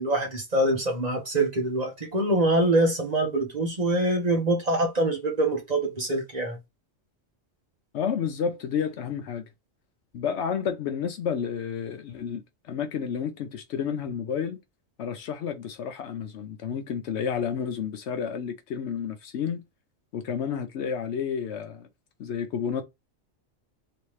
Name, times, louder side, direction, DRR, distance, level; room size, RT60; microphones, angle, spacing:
voice 1, 0.0-6.6, right 1 dB, 35° right, 1.1 m, -24 dB
voice 2, 7.9-9.5 10.1-14.6 15.0-19.6 20.1-21.9 22.2-22.8, left 7 dB, 70° left, 0.8 m, -30 dB
3.3 x 2.9 x 3.1 m
omnidirectional pair, 1.3 m